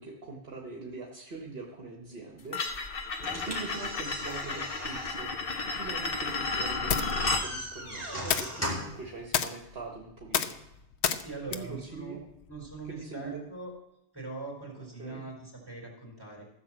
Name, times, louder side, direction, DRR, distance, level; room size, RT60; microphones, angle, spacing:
voice 1, 0.0-2.6 3.4-5.3 5.6-10.6 11.5-12.2 12.9-13.4 15.0-15.2, right 3 dB, 60° right, 0 dB, 1.5 m, -42 dB
sound 1, 2.5-7.5, left 3 dB, 55° left, 1.2 m, -32 dB
sound 2, 3.2-9.1, equal, 15° left, 3.4 m, -39 dB
sound 3, 5.8-13.0, left 8 dB, 70° left, 1.0 m, -34 dB
voice 2, 11.2-12.2 12.5-13.7 14.1-16.4, right 3 dB, 20° right, -2 dB, 4.0 m, -41 dB
14.0 x 6.2 x 7.4 m, 0.86 s
omnidirectional pair, 1.2 m